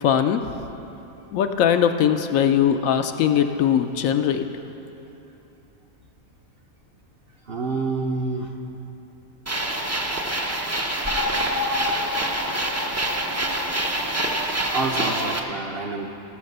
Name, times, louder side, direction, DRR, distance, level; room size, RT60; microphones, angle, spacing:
voice 1, 0.0-0.4 1.3-4.4, left 9 dB, 70° left, 7 dB, 0.9 m, -20 dB
voice 2, 7.5-8.5 10.8-11.0 11.3-11.7 14.7-16.1, right 3 dB, 50° right, 2 dB, 0.8 m, -28 dB
sound 1, 9.5-15.4, right 1 dB, 20° right, 0.4 m, -25 dB
16.5 x 5.7 x 6.7 m, 2.9 s
omnidirectional pair, 1.5 m